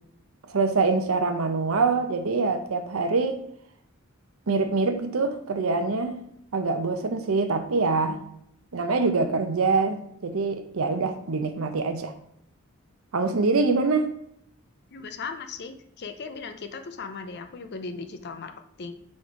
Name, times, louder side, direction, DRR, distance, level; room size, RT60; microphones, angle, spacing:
voice 1, 0.5-3.4 4.5-6.2 6.5-8.2 8.7-12.1 13.1-14.1, right 4 dB, 70° right, 6 dB, 0.7 m, -24 dB
voice 2, 14.9-19.0, left 4 dB, 55° left, 7 dB, 0.6 m, -37 dB
5.1 x 4.1 x 4.8 m, 0.70 s
head